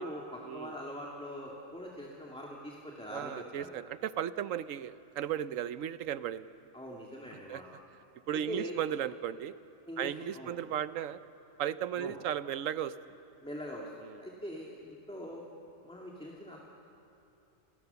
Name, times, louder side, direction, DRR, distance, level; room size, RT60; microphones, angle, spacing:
voice 1, 0.0-3.8 6.7-7.7 8.3-8.8 9.9-10.6 12.0-12.2 13.4-13.9 14.2-15.4 15.8-16.6, equal, 5° left, -2 dB, 2.4 m, -42 dB
voice 2, 3.1-6.5 7.5-7.6 8.3-9.5 10.0-11.2 11.6-12.9, right 10 dB, 80° right, 14 dB, 1.1 m, -35 dB
29.5 x 19.0 x 7.0 m, 2.7 s
omnidirectional pair, 1.3 m